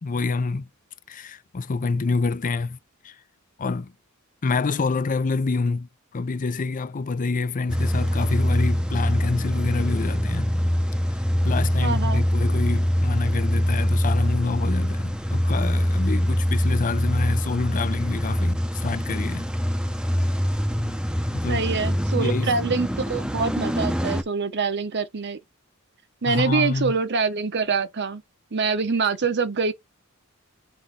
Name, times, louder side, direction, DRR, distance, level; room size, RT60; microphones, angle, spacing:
voice 1, 0.0-0.7 1.1-2.8 3.0-3.2 3.6-3.9 4.4-10.6 11.4-19.5 21.3-21.6 22.1-22.6 26.3-26.9, left 4 dB, 40° left, 0.5 m, -27 dB
Car / Engine starting / Idling, 7.7-24.2, equal, 5° right, 0.7 m, -24 dB
voice 2, 11.8-12.2 21.5-25.4 26.2-28.2 28.5-29.7, right 4 dB, 55° right, 0.9 m, -25 dB
6.1 x 3.0 x 5.3 m
head